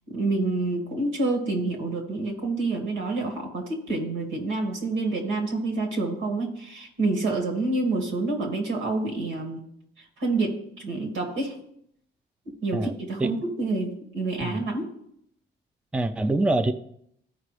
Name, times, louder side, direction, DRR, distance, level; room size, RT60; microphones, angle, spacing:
voice 1, 0.1-9.6 10.0-11.6 12.5-14.9, right 2 dB, 90° right, 1 dB, 2.3 m, -28 dB
voice 2, 15.9-16.7, right 2 dB, 5° right, 9 dB, 0.4 m, -24 dB
14.0 x 4.9 x 3.3 m, 0.72 s
cardioid pair, 90°, 20 cm